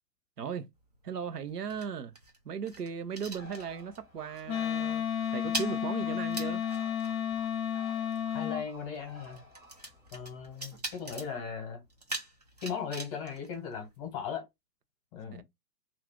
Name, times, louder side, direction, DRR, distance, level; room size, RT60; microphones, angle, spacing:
voice 1, 0.4-0.7 1.0-2.1 2.4-5.0 5.3-6.6 15.3-15.4, right 7 dB, 75° right, 0.6 m, -37 dB
sound 1, 0.7-4.1 4.3-4.6 4.9-14.3, right 2 dB, 30° right, 0.4 m, -43 dB
Bird, 3.3-10.7, left 2 dB, 5° right, 0.8 m, -54 dB
Wind instrument woodwind instrument, 4.5-8.6, left 9 dB, 60° left, 0.6 m, -32 dB
voice 2, 8.3-9.4 10.1-11.8 12.6-14.4 15.1-15.4, left 6 dB, 20° left, 1.0 m, -37 dB
2.4 x 2.4 x 3.5 m
figure-of-eight pair, 130°, 48 cm